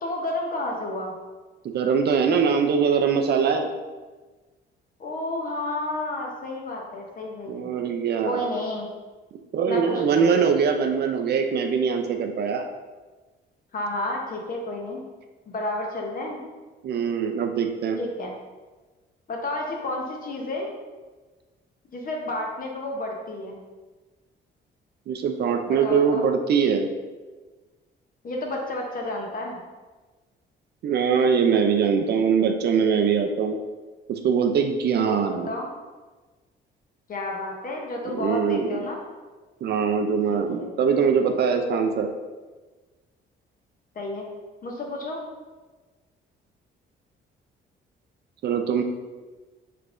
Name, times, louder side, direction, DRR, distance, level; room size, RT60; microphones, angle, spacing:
voice 1, 0.0-1.1 5.0-7.7 8.2-8.9 9.6-10.3 13.7-15.0 15.5-16.4 18.0-18.3 19.3-20.7 21.9-23.6 25.7-26.2 28.2-29.6 35.1-35.7 37.1-39.0 40.3-40.7 43.9-44.3 44.6-45.2, left 2 dB, 45° left, 0 dB, 0.8 m, -31 dB
voice 2, 1.7-3.7 7.5-8.5 9.5-12.7 16.8-18.0 25.1-26.9 30.8-33.6 34.1-35.5 38.2-38.8 39.6-42.1 48.4-48.8, right 6 dB, 55° right, 6 dB, 0.4 m, -22 dB
3.4 x 3.3 x 2.5 m, 1.3 s
cardioid pair, 90°, 20 cm